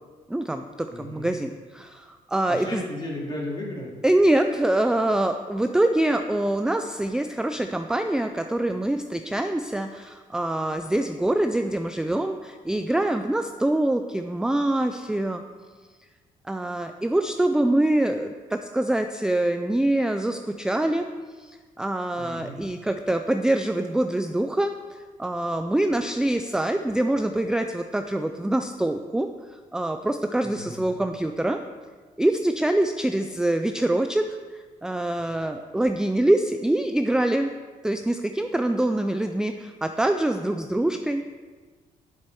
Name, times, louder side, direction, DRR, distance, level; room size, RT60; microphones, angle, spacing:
voice 1, 0.3-2.8 4.0-15.4 16.4-21.1 21.4-31.6 32.2-37.5 37.8-41.2, right 1 dB, 5° right, 7 dB, 0.4 m, -25 dB
voice 2, 0.9-1.3 2.5-3.9 22.2-22.6 30.4-30.8, left 1 dB, 30° left, -3 dB, 2.5 m, -35 dB
7.4 x 7.4 x 4.8 m, 1.5 s
cardioid pair, 100°, 15 cm